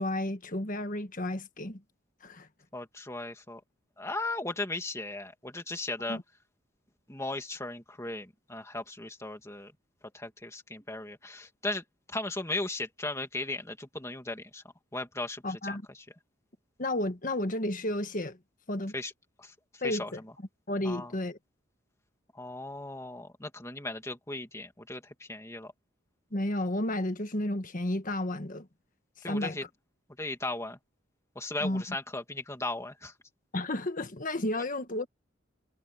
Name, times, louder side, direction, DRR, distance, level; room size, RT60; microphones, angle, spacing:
voice 1, 0.0-1.8 2.2-2.5 6.1-6.2 15.4-15.8 16.8-18.4 18.7-18.9 19.8-20.2 20.7-21.4 26.3-28.7 29.3-29.6 31.6-31.8 33.5-35.1, left 1 dB, 45° left, 1.5 m, -32 dB
voice 2, 2.7-3.6 4.0-6.2 7.1-9.7 10.1-14.6 14.9-15.8 18.9-19.1 19.4-20.1 20.8-21.1 22.3-25.7 29.2-29.6 30.2-30.8 31.4-33.1, left 2 dB, 15° left, 2.4 m, -37 dB
head